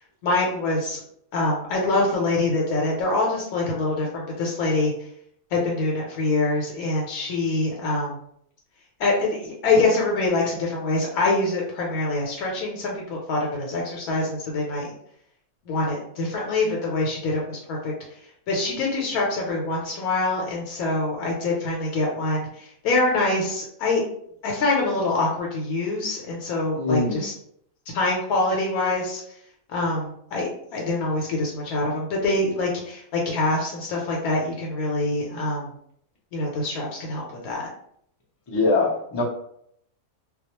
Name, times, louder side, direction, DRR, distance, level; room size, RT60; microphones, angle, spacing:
voice 1, 0.2-1.0 1.3-4.9 5.5-8.2 9.0-14.9 15.7-17.9 18.5-24.0 24.4-27.3 27.9-29.2 29.7-35.7 36.3-37.6, left 2 dB, 85° left, -2 dB, 1.1 m, -25 dB
voice 2, 26.8-27.2 38.5-39.2, left 3 dB, 40° left, -4 dB, 0.3 m, -22 dB
2.3 x 2.2 x 2.8 m, 0.69 s
omnidirectional pair, 1.5 m